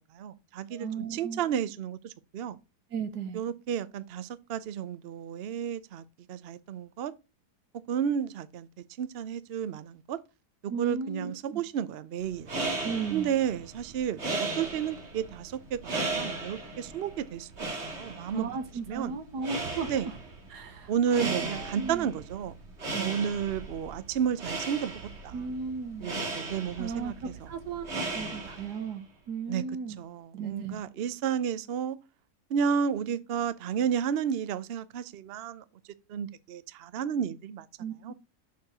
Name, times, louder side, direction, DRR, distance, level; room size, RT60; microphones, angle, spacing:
voice 1, 0.2-2.6 3.3-7.1 7.9-8.7 9.0-10.2 10.6-12.5 13.1-18.5 18.9-19.2 19.9-20.1 20.9-22.5 23.0-25.3 26.0-27.1 29.5-29.6 30.0-32.0 32.5-35.6 36.1-37.7 38.0-38.1, right 8 dB, 60° right, 0.6 m, -32 dB
voice 2, 0.7-1.4 2.9-3.4 10.7-11.6 12.8-13.3 18.3-19.9 20.5-22.1 22.9-23.2 25.3-26.1 26.8-30.0 30.3-30.8 37.8-38.1, right 5 dB, 80° right, 1.7 m, -36 dB
sound 1, 12.3-28.9, right 2 dB, 45° right, 2.0 m, -37 dB
6.7 x 4.7 x 6.5 m
omnidirectional pair, 1.7 m